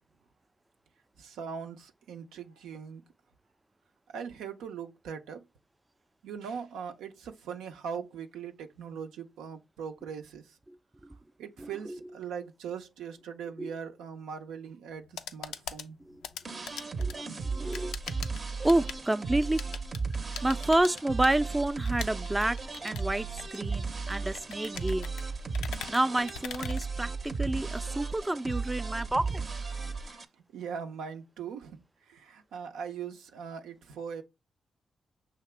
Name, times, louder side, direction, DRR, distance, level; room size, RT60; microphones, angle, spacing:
voice 1, 1.2-3.0 4.1-5.4 6.2-10.6 11.4-16.0 25.2-25.3 30.5-34.2, right 7 dB, 90° right, 0.5 m, -40 dB
voice 2, 11.6-12.0 13.6-13.7 16.1-16.2 16.5-16.6 17.0-18.0 18.6-19.6 20.4-22.6 22.8-25.1 25.9-29.4, right 1 dB, 20° right, 0.4 m, -29 dB
sound 1, 14.9-27.5, left 8 dB, 90° left, 0.3 m, -44 dB
sound 2, 16.4-30.2, right 4 dB, 50° right, 0.7 m, -35 dB
5.8 x 2.8 x 3.3 m
supercardioid pair, 50°, 0 cm